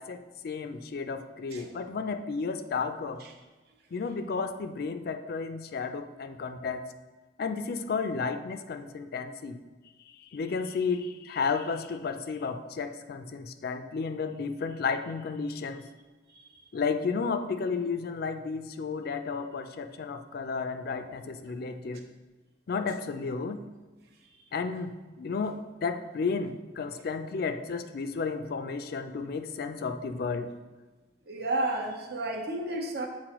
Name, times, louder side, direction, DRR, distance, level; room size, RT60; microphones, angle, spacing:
voice 1, 0.0-3.2 3.9-6.8 7.4-9.6 10.2-15.8 16.7-22.0 22.7-23.6 24.5-30.5, left 5 dB, 60° left, 8 dB, 0.4 m, -32 dB
voice 2, 31.3-33.1, right 2 dB, 65° right, 2 dB, 0.9 m, -32 dB
7.5 x 4.2 x 3.0 m, 1.3 s
head